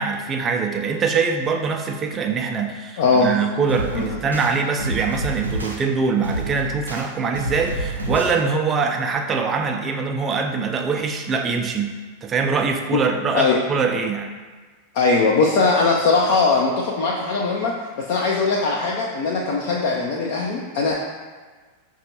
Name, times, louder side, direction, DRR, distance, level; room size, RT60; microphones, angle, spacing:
voice 1, 0.0-14.4, right 5 dB, 25° right, 4 dB, 0.4 m, -23 dB
voice 2, 3.0-3.3 3.9-4.2 13.3-13.6 14.9-21.1, left 4 dB, 50° left, -3 dB, 0.4 m, -20 dB
sound 1, 3.7-4.5 4.8-5.8 6.2-7.0 7.3-8.3, right 1 dB, 80° right, 0.5 m, -28 dB
5.7 x 2.3 x 2.8 m, 1.4 s
figure-of-eight pair, 90°, 0 cm